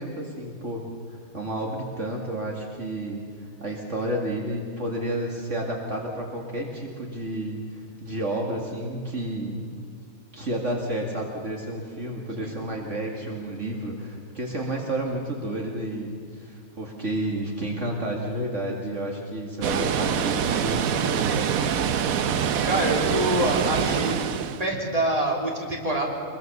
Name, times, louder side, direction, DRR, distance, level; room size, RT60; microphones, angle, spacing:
voice 1, 0.0-9.6 10.3-22.1, right 1 dB, 60° right, 0 dB, 2.6 m, -31 dB
Water, 19.6-24.7, right 8 dB, 85° right, 1.3 m, -25 dB
voice 2, 22.6-24.1 24.6-26.0, right 1 dB, 25° right, -1 dB, 3.5 m, -25 dB
24.5 x 22.0 x 6.9 m, 2.1 s
omnidirectional pair, 1.4 m